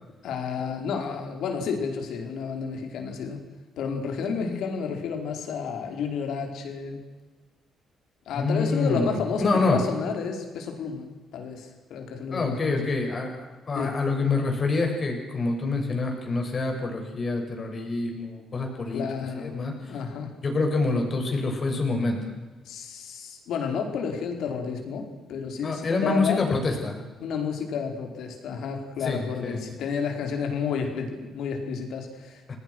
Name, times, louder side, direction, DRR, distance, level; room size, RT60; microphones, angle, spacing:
voice 1, 0.2-3.4 3.8-7.0 8.2-12.9 13.7-14.0 18.9-19.6 19.9-20.3 22.6-26.4 27.2-32.5, left 6 dB, 80° left, 4 dB, 4.8 m, -31 dB
voice 2, 8.3-9.8 12.3-19.1 19.4-19.9 20.4-22.3 25.6-27.0 29.0-29.6 32.5-32.6, left 3 dB, 40° left, 2 dB, 7.3 m, -26 dB
29.0 x 19.0 x 6.3 m, 1.3 s
cardioid pair, 90°, 0 cm